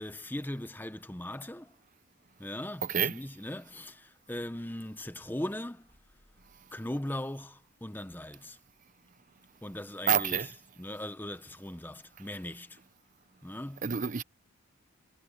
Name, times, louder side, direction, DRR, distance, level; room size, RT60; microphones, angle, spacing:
voice 1, 0.0-1.8 2.4-5.9 6.7-8.6 9.6-12.8 13.4-13.9, left 1 dB, 10° left, 0.7 m, -39 dB
voice 2, 10.1-10.5 13.8-14.2, right 8 dB, 35° right, 0.6 m, -27 dB
head